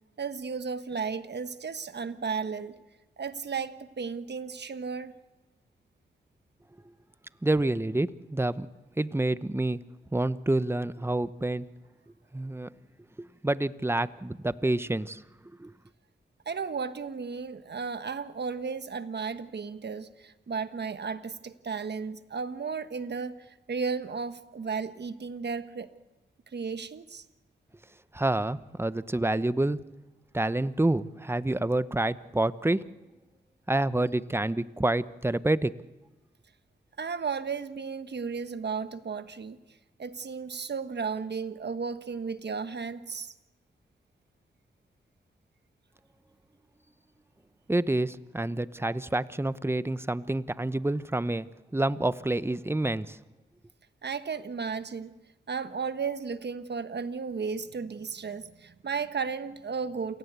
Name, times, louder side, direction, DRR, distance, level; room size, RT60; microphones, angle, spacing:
voice 1, 0.2-2.8 3.2-5.1 16.4-25.9 26.5-27.2 37.0-39.6 40.0-43.3 54.0-55.1 55.5-60.2, right 5 dB, 60° right, 11 dB, 1.3 m, -34 dB
voice 2, 7.4-8.7 9.0-9.8 10.1-11.7 12.3-12.7 13.2-15.2 15.6-15.7 28.1-29.8 30.3-32.8 33.7-35.8 47.7-51.5 51.7-53.2, right 2 dB, 10° right, 15 dB, 0.9 m, -28 dB
28.5 x 17.5 x 8.2 m, 1.1 s
cardioid pair, 50°, 20 cm